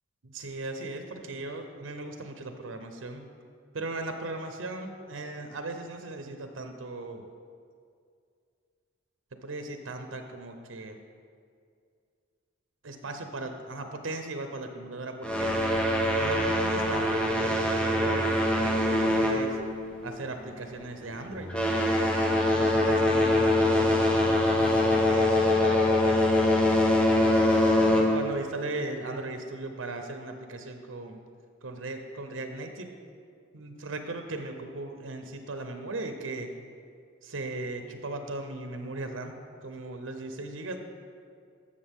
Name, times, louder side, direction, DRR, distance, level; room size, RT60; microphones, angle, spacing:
voice 1, 0.2-3.3 3.7-7.2 9.4-11.0 12.8-15.6 16.2-19.6 20.0-21.5 22.5-27.4 27.9-31.2 31.6-32.9 33.5-36.5 37.2-40.8, right 2 dB, 80° right, 6 dB, 0.7 m, -38 dB
sound 1, 15.2-20.1 20.4-20.7 21.3-28.4, left 1 dB, 5° left, 1.0 m, -24 dB
12.5 x 6.6 x 3.6 m, 2.3 s
head